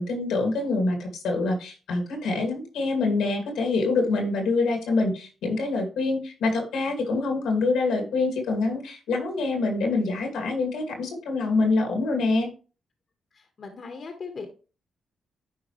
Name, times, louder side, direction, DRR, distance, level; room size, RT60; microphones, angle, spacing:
voice 1, 0.0-12.5, left 3 dB, 90° left, 3 dB, 2.2 m, -25 dB
voice 2, 13.3-14.6, left 4 dB, 55° left, 4 dB, 1.4 m, -39 dB
10.5 x 4.5 x 3.2 m, 0.35 s
supercardioid pair, 60°, 0 cm